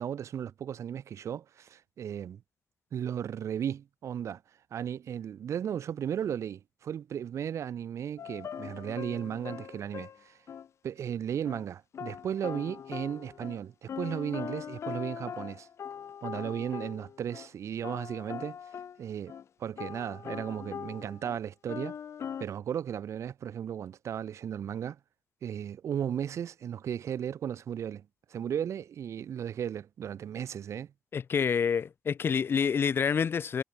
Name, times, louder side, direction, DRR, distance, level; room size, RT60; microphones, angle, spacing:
voice 1, 0.0-2.4 2.9-4.4 4.7-10.4 10.8-15.7 16.2-18.6 19.0-19.3 19.6-21.9 22.4-25.0 25.4-30.9, right 9 dB, 75° right, 1.7 m, -35 dB
sound 1, 8.2-10.7 11.4-11.6 11.9-17.5 17.8-19.0 19.3-19.4 19.8-21.4 21.7-22.5, left 8 dB, 65° left, 2.6 m, -41 dB
voice 2, 31.1-33.6, left 6 dB, 50° left, 0.5 m, -27 dB
cardioid pair, 90°, 5 cm